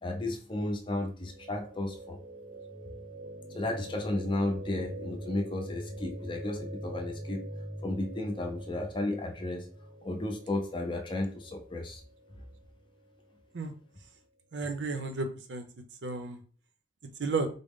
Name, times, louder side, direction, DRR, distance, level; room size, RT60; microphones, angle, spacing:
voice 1, 0.0-2.2 3.5-7.4 7.8-9.7 10.0-12.0, left 2 dB, 25° left, 4 dB, 0.5 m, -33 dB
sound 1, 1.2-13.3, right 1 dB, 20° right, 0.7 m, -44 dB
voice 2, 14.5-15.7 16.0-16.4 17.2-17.5, right 3 dB, 80° right, 6 dB, 0.6 m, -32 dB
3.7 x 2.0 x 3.6 m, 0.40 s
head